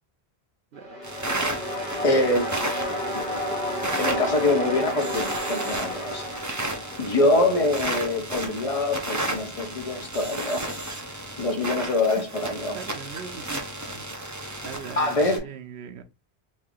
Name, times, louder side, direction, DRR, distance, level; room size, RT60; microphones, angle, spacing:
sound 1, 0.7-7.8, left 1 dB, 45° right, 1.2 m, -32 dB
sound 2, 1.0-15.4, right 1 dB, 20° right, 0.6 m, -33 dB
voice 1, 2.0-2.6 3.1-3.4 4.0-6.2 7.0-10.7 11.4-12.8 15.0-15.5, left 2 dB, 35° left, 0.9 m, -24 dB
voice 2, 12.7-14.2 14.6-16.0, right 7 dB, 80° right, 0.9 m, -41 dB
3.2 x 2.7 x 3.7 m
omnidirectional pair, 1.1 m